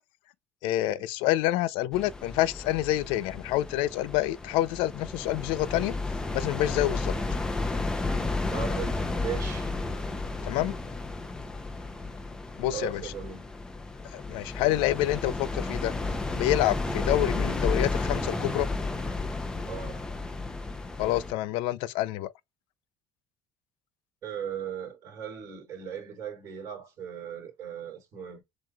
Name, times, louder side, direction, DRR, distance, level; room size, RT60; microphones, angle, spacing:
voice 1, 0.6-5.9 6.3-7.1 10.4-10.7 12.6-13.1 14.1-15.9 16.3-18.7 21.0-22.3, left 15 dB, 80° left, 0.4 m, -27 dB
sound 1, 1.9-21.3, left 3 dB, 10° left, 0.5 m, -32 dB
voice 2, 8.5-9.8 12.7-13.4 19.6-20.0 24.2-28.4, right 8 dB, 35° right, 3.1 m, -38 dB
7.4 x 3.0 x 2.3 m
cardioid pair, 180°, 9 cm